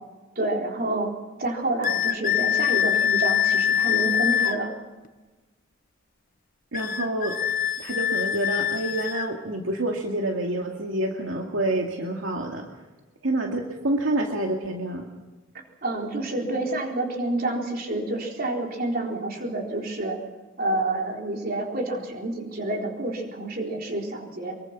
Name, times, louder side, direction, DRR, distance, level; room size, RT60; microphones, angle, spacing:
voice 1, 0.4-4.7 15.8-20.2 20.6-24.6, right 2 dB, 45° right, 1 dB, 4.1 m, -28 dB
sound 1, 1.8-4.6 6.7-9.3, left 9 dB, 40° left, 1.1 m, -24 dB
voice 2, 6.7-7.3 7.8-12.7 13.2-15.0, right 1 dB, 70° right, 1 dB, 2.3 m, -27 dB
24.5 x 23.0 x 6.0 m, 1.2 s
head